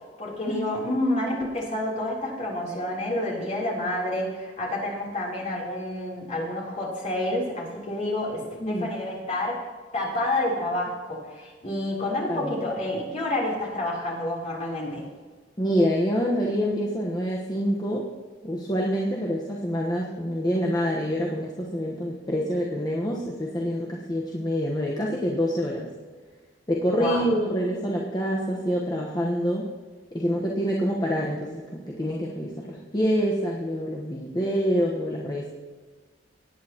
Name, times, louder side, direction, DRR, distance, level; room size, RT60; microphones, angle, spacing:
voice 1, 0.2-9.6 9.9-15.0 27.0-27.3, left 1 dB, 40° left, -4 dB, 3.7 m, -29 dB
voice 2, 15.6-18.0 18.4-25.9 26.7-29.7 30.1-35.5, equal, 20° left, -3 dB, 1.2 m, -26 dB
18.5 x 9.5 x 3.0 m, 1.4 s
head